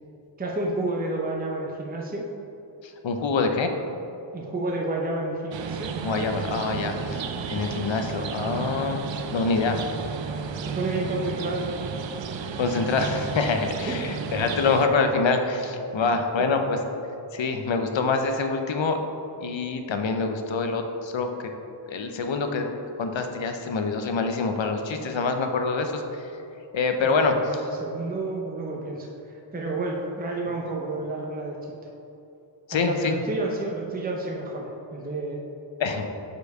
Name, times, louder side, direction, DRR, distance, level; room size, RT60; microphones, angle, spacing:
voice 1, 0.4-2.3 4.3-5.9 10.6-11.7 13.8-14.1 16.0-16.2 24.9-25.2 27.0-31.7 32.7-35.4, right 2 dB, 20° right, -1 dB, 0.6 m, -30 dB
voice 2, 2.8-3.7 6.0-7.2 7.5-9.8 12.6-16.8 17.3-19.0 19.4-21.3 21.9-22.7 23.0-26.3 26.7-27.4 32.7-33.2 35.8-36.1, left 4 dB, 70° left, 5 dB, 0.7 m, -25 dB
sound 1, 5.5-14.9, right 6 dB, 70° right, 0.5 m, -33 dB
5.2 x 4.5 x 4.6 m, 2.8 s
wide cardioid pair, 75°, 48 cm